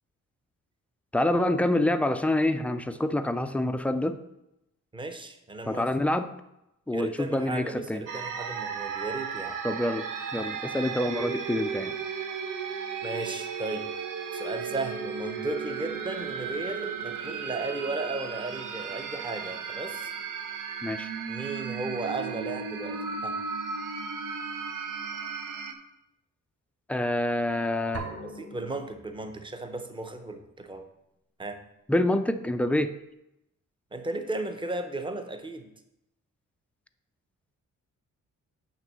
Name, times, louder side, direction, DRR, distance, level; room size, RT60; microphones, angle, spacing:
voice 1, 1.1-4.2 5.7-6.3 6.9-8.0 9.6-12.0 20.8-21.1 26.9-28.0 31.9-32.9, left 1 dB, 5° left, 9 dB, 0.3 m, -27 dB
voice 2, 4.9-5.9 6.9-9.6 13.0-13.9 14.3-20.1 21.3-23.4 28.2-30.9 31.4-31.6 33.9-35.7, right 2 dB, 15° right, 6 dB, 0.7 m, -35 dB
sound 1, 8.1-25.7, right 6 dB, 90° right, 0.9 m, -35 dB
sound 2, 27.9-29.8, right 3 dB, 50° right, 1.4 m, -41 dB
9.0 x 3.6 x 6.8 m, 0.87 s
wide cardioid pair, 160°, 31 cm